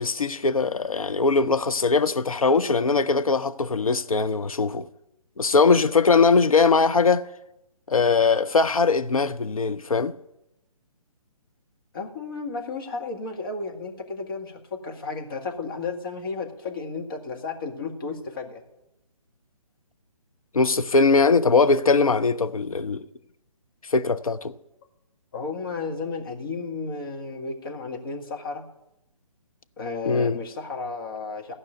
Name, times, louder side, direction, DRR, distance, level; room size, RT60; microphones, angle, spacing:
voice 1, 0.0-4.9 5.4-7.3 7.9-10.1 20.5-23.0 23.9-24.5 30.0-30.4, left 4 dB, 65° left, 0.7 m, -21 dB
voice 2, 11.9-18.6 25.3-28.6 29.8-31.5, left 4 dB, 35° left, 1.8 m, -33 dB
15.5 x 5.5 x 9.1 m
figure-of-eight pair, 140°, 19 cm